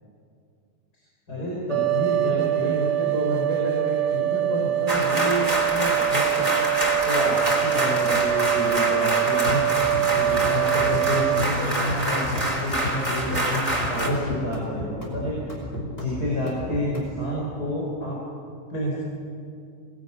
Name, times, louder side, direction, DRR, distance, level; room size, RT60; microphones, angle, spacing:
voice 1, 1.3-6.7 7.0-9.6 10.1-15.6 16.0-18.2 18.7-19.0, left 1 dB, 70° left, -4 dB, 5.6 m, -29 dB
sound 1, 1.7-11.5, right 14 dB, 85° right, 1.5 m, -24 dB
sound 2, 4.9-14.1, right 1 dB, 20° right, 3.9 m, -26 dB
sound 3, 9.4-17.2, left 1 dB, 35° left, 5.4 m, -33 dB
24.5 x 19.5 x 9.7 m, 2.4 s
omnidirectional pair, 1.8 m